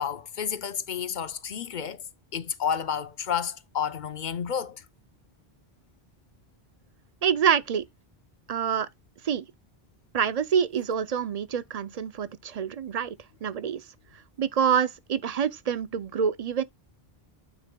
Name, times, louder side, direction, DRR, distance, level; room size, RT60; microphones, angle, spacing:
voice 1, 0.0-2.0 2.3-4.8, left 8 dB, 55° left, 0.7 m, -30 dB
voice 2, 7.2-7.9 8.5-8.9 9.2-9.4 10.1-13.9 14.4-16.6, right 7 dB, 50° right, 0.5 m, -26 dB
9.4 x 5.9 x 2.2 m
omnidirectional pair, 1.0 m